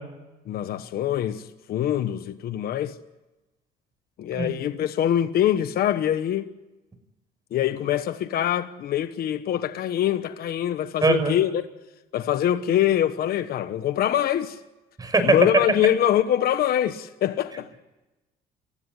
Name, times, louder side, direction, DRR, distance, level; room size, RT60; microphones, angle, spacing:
voice 1, 0.5-3.0 4.2-6.5 7.5-11.7 12.1-14.6 15.2-17.7, left 11 dB, 65° left, 1.3 m, -24 dB
voice 2, 11.0-11.4 15.0-15.4, right 3 dB, 20° right, 6.2 m, -21 dB
30.0 x 16.5 x 9.8 m
cardioid pair, 110°, 17 cm